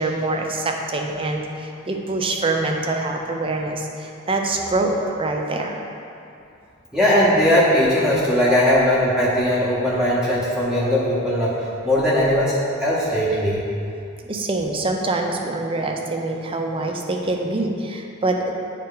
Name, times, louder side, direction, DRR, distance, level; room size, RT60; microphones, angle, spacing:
voice 1, 0.0-5.7 14.2-18.5, right 2 dB, 25° right, 2 dB, 0.5 m, -25 dB
voice 2, 6.9-11.5 11.8-13.6, equal, 5° right, -8 dB, 0.8 m, -19 dB
9.6 x 3.3 x 3.8 m, 2.6 s
head